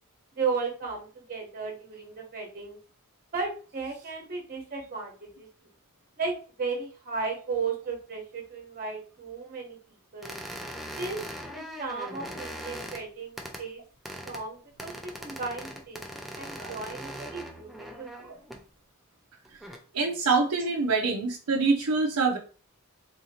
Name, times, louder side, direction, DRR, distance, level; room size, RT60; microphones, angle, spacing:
voice 1, 0.3-2.8 3.3-5.5 6.2-9.8 10.1-10.3 11.0-11.2 11.5-13.8 14.3-18.3, right 4 dB, 40° right, 0 dB, 1.0 m, -35 dB
sound 1, 10.2-13.0 13.4-13.6 14.0-14.4 14.8-18.6 19.4-19.8, equal, ahead, 0.4 m, -40 dB
voice 2, 19.9-22.4, right 4 dB, 85° right, 1 dB, 0.6 m, -25 dB
3.7 x 2.8 x 2.8 m, 0.37 s
head